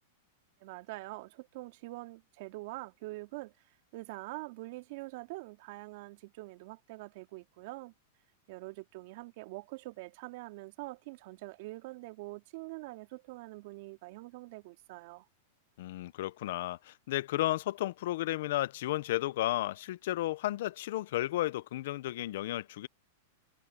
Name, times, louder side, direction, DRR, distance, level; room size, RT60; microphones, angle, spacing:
voice 1, 0.6-3.5 3.9-7.9 8.5-15.3, right 22 dB, 60° right, 3.6 m, -44 dB
voice 2, 15.8-22.9, left 15 dB, 65° left, 1.0 m, -33 dB
hypercardioid pair, 120°, 0 cm